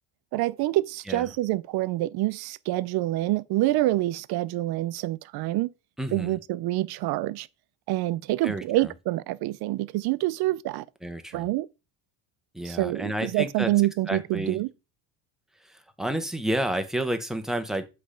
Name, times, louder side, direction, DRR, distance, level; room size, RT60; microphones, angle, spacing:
voice 1, 0.3-5.7 6.1-7.5 7.9-10.8 11.3-11.7 12.6-14.7, right 16 dB, 60° right, 0.5 m, -26 dB
voice 2, 6.0-6.4 8.4-8.9 11.0-11.5 12.5-13.7 14.1-14.6 15.6-17.9, right 1 dB, ahead, 0.7 m, -30 dB
7.8 x 3.3 x 5.0 m
cardioid pair, 140°, 43 cm